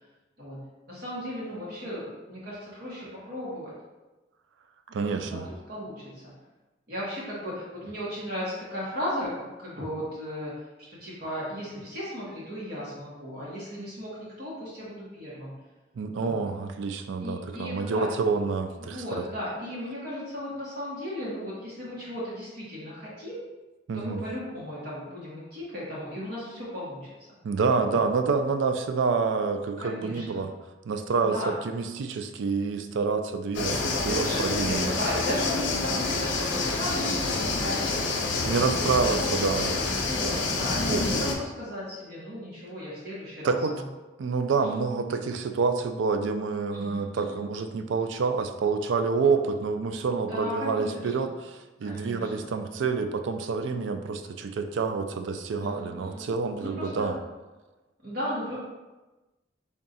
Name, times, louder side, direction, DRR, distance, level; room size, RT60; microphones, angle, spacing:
voice 1, 0.4-3.7 5.1-6.3 6.9-10.5 10.9-15.5 16.2-16.4 17.2-18.1 18.9-23.4 23.9-27.1 27.9-28.0 29.8-30.4 31.2-31.5 34.1-38.9 39.2-39.5 39.9-43.9 46.7-47.4 50.3-51.3 51.8-52.5 55.6-56.3 56.6-57.1 58.0-58.6, equal, 55° right, -7 dB, 0.9 m, -36 dB
voice 2, 4.9-5.5 16.0-19.2 23.9-24.2 27.4-30.5 30.9-34.9 38.4-39.8 40.9-41.0 43.4-43.7 44.2-57.2, right 4 dB, 80° right, 8 dB, 0.3 m, -28 dB
sound 1, 33.5-41.3, left 3 dB, 75° left, 0.5 m, -28 dB
3.7 x 2.3 x 4.0 m, 1.1 s
head